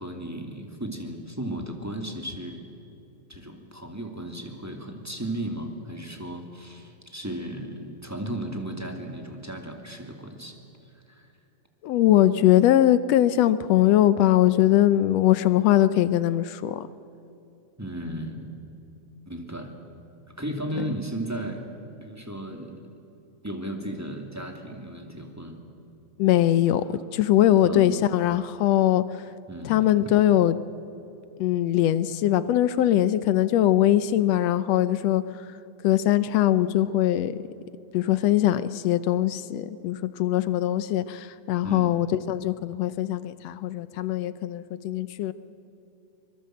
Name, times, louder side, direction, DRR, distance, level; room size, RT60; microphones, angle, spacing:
voice 1, 0.0-2.6 3.3-10.6 11.1-11.3 17.8-18.5 19.3-19.7 20.4-21.6 22.0-22.8 23.4-25.6 26.5-26.6 27.6-27.9 29.5-30.1 41.6-42.0, right 1 dB, 5° right, 3 dB, 2.0 m, -35 dB
voice 2, 11.8-16.9 26.2-29.3 29.6-30.6 31.4-35.4 35.8-37.4 37.9-45.3, left 12 dB, 75° left, 14 dB, 1.6 m, -21 dB
24.5 x 22.5 x 7.7 m, 2.9 s
omnidirectional pair, 3.5 m